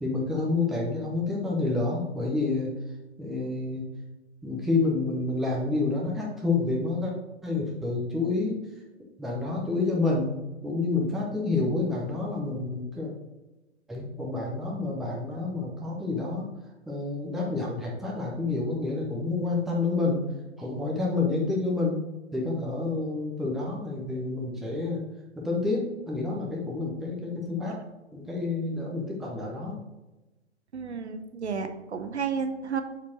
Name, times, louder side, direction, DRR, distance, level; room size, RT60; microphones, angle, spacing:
voice 1, 0.0-2.7 3.2-3.8 4.4-7.1 7.4-8.6 9.2-10.3 10.6-13.1 13.9-16.5 16.9-20.2 20.6-22.0 22.3-25.0 25.3-27.8 28.1-29.8, left 3 dB, ahead, -3 dB, 0.7 m, -28 dB
voice 2, 30.7-32.8, right 6 dB, 70° right, 7 dB, 0.9 m, -32 dB
7.1 x 4.3 x 4.4 m, 1.1 s
figure-of-eight pair, 115°, 35 cm